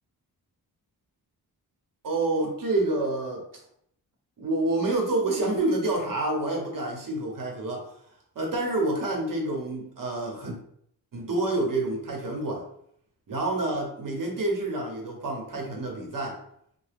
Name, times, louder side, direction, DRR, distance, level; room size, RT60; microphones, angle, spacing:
voice 1, 2.0-3.5 4.4-7.9 8.3-10.6 11.1-12.7 13.3-16.4, right 2 dB, 60° right, 0 dB, 0.9 m, -28 dB
2.8 x 2.2 x 3.3 m, 0.68 s
wide cardioid pair, 115°, 38 cm